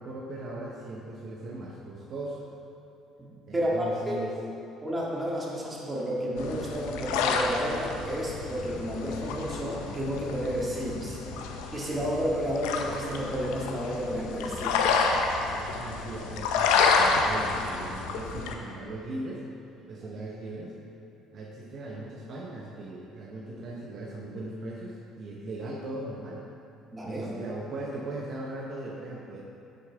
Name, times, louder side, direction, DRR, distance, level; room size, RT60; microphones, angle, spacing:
voice 1, 0.0-2.5 3.5-4.4 15.6-19.4 19.9-20.7 21.3-26.4 27.0-29.4, right 2 dB, 55° right, -2 dB, 0.9 m, -38 dB
voice 2, 3.2-4.2 4.8-11.2 11.7-14.9 26.9-27.3, equal, 20° right, -4 dB, 1.9 m, -31 dB
sound 1, 6.4-18.5, left 4 dB, 90° left, 0.6 m, -29 dB
8.8 x 6.7 x 3.4 m, 2.8 s
supercardioid pair, 95°, 0 cm